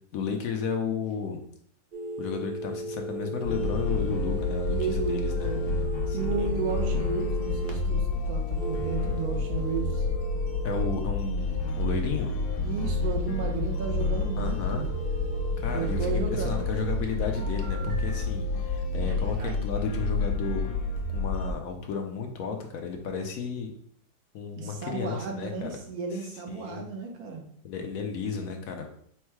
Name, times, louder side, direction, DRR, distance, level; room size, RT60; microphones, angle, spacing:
voice 1, 0.1-1.4 2.2-5.5 6.1-6.5 10.6-12.3 14.4-14.9 15.6-20.7 21.1-23.7 24.3-25.8 26.5-26.9 27.6-28.9, left 5 dB, 70° left, 3 dB, 1.0 m, -33 dB
sound 1, 1.9-7.7 8.5-10.9 14.9-16.9 17.3-18.2 19.1-19.5, right 1 dB, 55° right, 0.7 m, -37 dB
sound 2, 3.4-21.5, left 2 dB, 85° left, 1.2 m, -29 dB
voice 2, 4.7-5.7 6.1-10.0 12.6-15.0 15.7-16.6 24.6-27.4, right 5 dB, 70° right, 2 dB, 1.2 m, -34 dB
4.4 x 2.1 x 4.5 m, 0.63 s
omnidirectional pair, 1.7 m